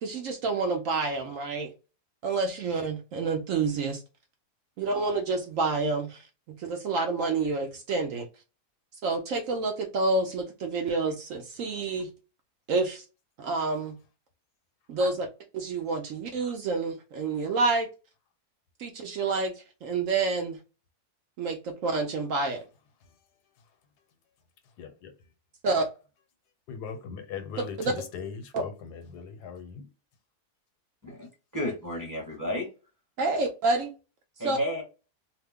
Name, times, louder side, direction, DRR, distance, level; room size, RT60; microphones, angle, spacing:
voice 1, 0.0-1.7 2.2-4.0 4.8-8.3 9.0-12.1 12.7-13.0 13.4-14.0 14.9-15.3 15.5-17.9 18.8-19.5 19.8-20.6 21.4-22.6 25.6-25.9 27.8-27.9 33.2-33.9 34.4-34.6, right 3 dB, 65° right, 0.8 m, -28 dB
voice 2, 24.8-25.1 26.7-29.9, left 6 dB, 80° left, 1.2 m, -39 dB
voice 3, 31.0-32.7 34.4-34.8, equal, 15° right, 0.9 m, -32 dB
2.8 x 2.1 x 3.5 m
omnidirectional pair, 1.7 m